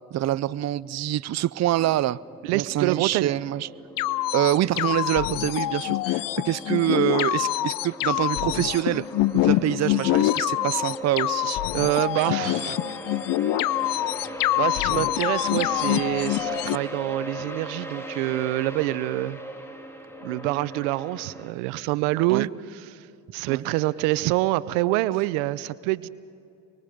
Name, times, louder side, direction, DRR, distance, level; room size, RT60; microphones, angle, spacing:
voice 1, 0.1-2.2 2.5-3.7 4.3-9.1 9.3-11.6 22.3-22.5 23.5-23.6, right 13 dB, 45° right, 17 dB, 0.6 m, -25 dB
sound 1, 1.8-21.5, equal, 5° left, 2.8 m, -39 dB
voice 2, 2.4-3.3 11.7-12.8 14.6-19.4 20.2-22.5 22.9-23.0 23.3-26.1, right 17 dB, 85° right, 17 dB, 0.6 m, -26 dB
sound 2, 4.0-16.8, left 16 dB, 65° left, 0.6 m, -25 dB
25.0 x 23.0 x 5.1 m, 2.5 s
supercardioid pair, 60°, 36 cm